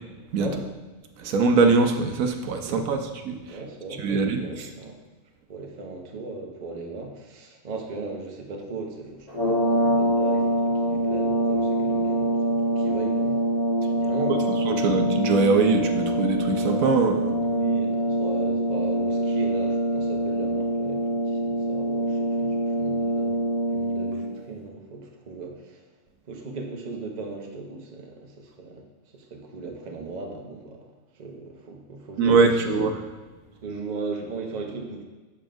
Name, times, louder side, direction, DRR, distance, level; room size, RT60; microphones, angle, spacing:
voice 1, 1.2-3.0 3.2-3.4 4.0-4.4 14.7-17.4 32.2-33.0, right 4 dB, 75° right, 5 dB, 1.0 m, -22 dB
voice 2, 2.6-3.1 3.5-5.0 5.5-15.0 17.4-23.4 23.7-25.8 26.3-28.8 29.1-30.8 31.1-32.7 33.6-35.0, right 3 dB, 35° right, 1 dB, 0.8 m, -37 dB
sound 1, 9.3-24.4, right 1 dB, 30° left, 1.2 m, -25 dB
7.0 x 6.9 x 2.5 m, 1.3 s
omnidirectional pair, 1.5 m